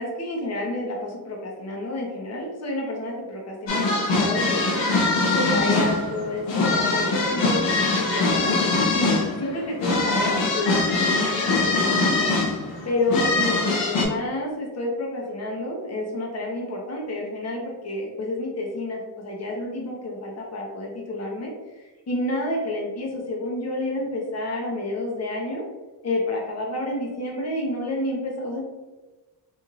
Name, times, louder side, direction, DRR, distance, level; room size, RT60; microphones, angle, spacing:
voice 1, 0.0-4.9 5.3-8.6 8.9-12.3 12.8-21.5 21.8-25.6 26.0-28.6, left 1 dB, 35° left, -1 dB, 0.8 m, -29 dB
sound 1, 3.7-14.0, left 3 dB, 80° left, 0.8 m, -23 dB
3.1 x 2.6 x 2.4 m, 1.2 s
cardioid pair, 80°, 44 cm